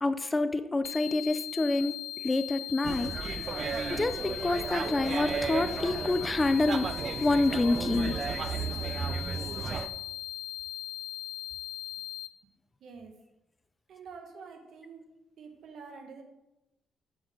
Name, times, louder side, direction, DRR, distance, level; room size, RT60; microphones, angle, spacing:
voice 1, 0.0-1.9 2.2-6.9 7.2-8.1, left 2 dB, 20° left, 12 dB, 0.5 m, -28 dB
sound 1, 0.8-12.3, left 14 dB, 80° left, 0.5 m, -39 dB
sound 2, 2.8-9.9, right 6 dB, 50° right, 0.6 m, -34 dB
voice 2, 12.8-13.1 13.9-15.0 15.4-16.2, right 5 dB, 70° right, 3 dB, 1.8 m, -47 dB
8.0 x 7.9 x 3.9 m, 0.93 s
cardioid pair, 90°, 0 cm